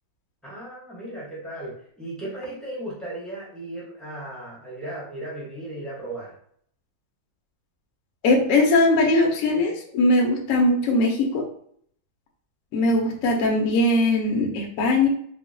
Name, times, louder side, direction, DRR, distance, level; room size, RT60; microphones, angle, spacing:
voice 1, 0.4-6.3, right 1 dB, ahead, -8 dB, 0.4 m, -36 dB
voice 2, 8.2-11.4 12.7-15.1, left 2 dB, 70° left, 1 dB, 0.8 m, -20 dB
3.6 x 2.0 x 2.6 m, 0.63 s
omnidirectional pair, 2.0 m